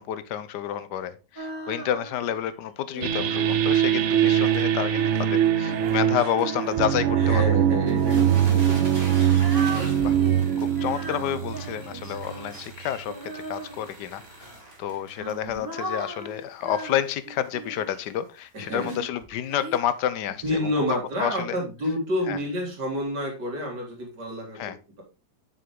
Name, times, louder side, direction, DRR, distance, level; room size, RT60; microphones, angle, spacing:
voice 1, 0.0-7.4 10.0-10.1 10.6-14.5 14.8-21.6 22.3-22.4 24.5-24.8, left 10 dB, 85° left, 14 dB, 1.3 m, -29 dB
Female singing, 1.4-2.4 2.9-7.8 8.5-14.1 14.9-18.0 18.7-19.8, right 2 dB, 15° right, 1.1 m, -39 dB
sound 1, 3.0-12.4, right 10 dB, 60° right, 0.8 m, -22 dB
sound 2, 4.5-4.6 5.1-5.2 5.4-5.5 5.9-6.0 6.4-6.5 7.3-7.4 7.7-19.2 19.9-20.0 20.5-20.6, right 1 dB, 35° right, 2.7 m, -44 dB
voice 2, 7.1-8.9 9.8-10.1 18.5-18.9 20.4-25.0, left 1 dB, 80° right, 0 dB, 3.3 m, -29 dB
6.8 x 6.4 x 3.7 m, 0.30 s
omnidirectional pair, 1.8 m